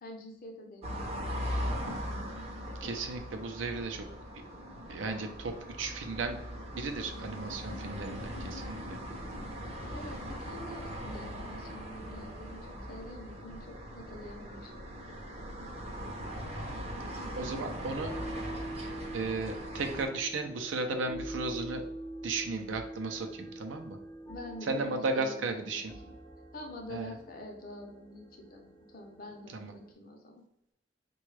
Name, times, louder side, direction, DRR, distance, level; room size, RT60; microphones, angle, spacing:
voice 1, 0.0-1.7 9.9-14.8 24.3-26.1 26.5-30.3, left 1 dB, 50° left, 2 dB, 0.7 m, -46 dB
sound 1, 0.8-20.1, equal, 35° right, 0.6 m, -40 dB
voice 2, 2.8-4.1 4.3-4.4 4.7-6.4 6.7-9.0 17.4-18.1 19.1-21.9 22.2-24.0 24.7-25.9 26.9-27.1 29.5-29.7, right 3 dB, 80° right, 5 dB, 0.5 m, -35 dB
sound 2, 17.3-29.9, right 1 dB, 10° left, 0.3 m, -45 dB
3.5 x 2.3 x 3.2 m, 0.81 s
head